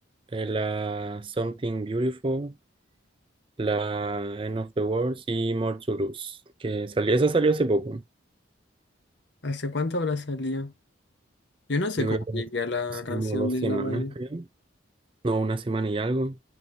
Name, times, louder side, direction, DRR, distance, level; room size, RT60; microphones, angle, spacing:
voice 1, 0.3-2.5 3.6-8.0 12.0-12.4 12.9-14.4 15.2-16.4, right 2 dB, 25° right, 0.4 m, -27 dB
voice 2, 9.4-10.7 11.7-14.1, left 2 dB, 60° left, 1.0 m, -29 dB
10.5 x 4.0 x 2.7 m
head